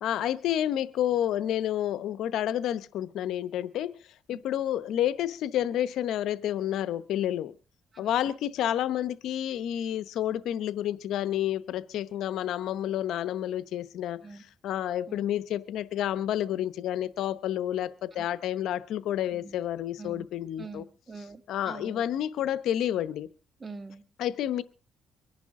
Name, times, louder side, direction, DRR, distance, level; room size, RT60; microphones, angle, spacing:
voice 1, 0.0-3.9 4.3-7.5 8.0-14.2 14.6-20.8 21.5-23.3 24.2-24.6, left 11 dB, 80° left, 0.8 m, -29 dB
voice 2, 20.6-22.0 23.6-24.0, right 3 dB, 30° right, 1.7 m, -44 dB
24.0 x 10.5 x 3.7 m
cardioid pair, 90°, 0 cm